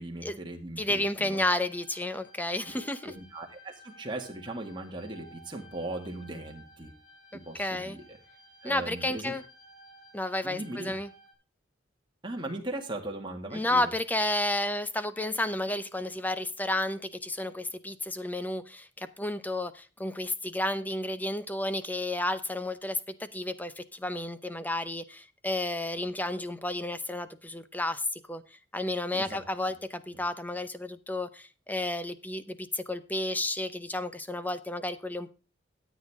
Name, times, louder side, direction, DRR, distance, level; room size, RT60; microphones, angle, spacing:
voice 1, 0.0-1.4 2.6-6.9 7.3-8.2 8.6-9.3 10.4-10.9 12.2-13.9 29.1-29.4, right 1 dB, 25° right, 2 dB, 2.1 m, -39 dB
voice 2, 0.8-3.1 7.5-8.0 8.6-9.4 10.1-11.1 13.5-35.3, left 1 dB, 10° left, 13 dB, 0.6 m, -32 dB
sound 1, 1.7-11.3, right 1 dB, 50° left, 3.9 m, -55 dB
13.5 x 8.4 x 3.6 m, 0.34 s
head